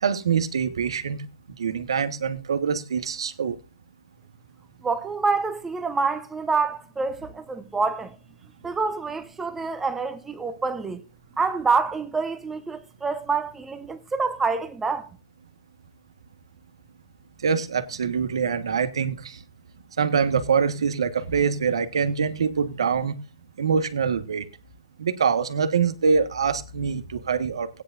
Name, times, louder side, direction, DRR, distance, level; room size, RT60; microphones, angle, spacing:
voice 1, 0.0-1.2 1.6-3.6 17.4-19.4 20.0-23.1 23.6-24.4 25.0-27.7, right 6 dB, 85° right, 1.5 m, -24 dB
voice 2, 4.8-8.2 8.6-11.0 11.4-15.1, right 4 dB, 10° right, 0.9 m, -27 dB
16.5 x 9.7 x 2.6 m
hypercardioid pair, 150°, 3 cm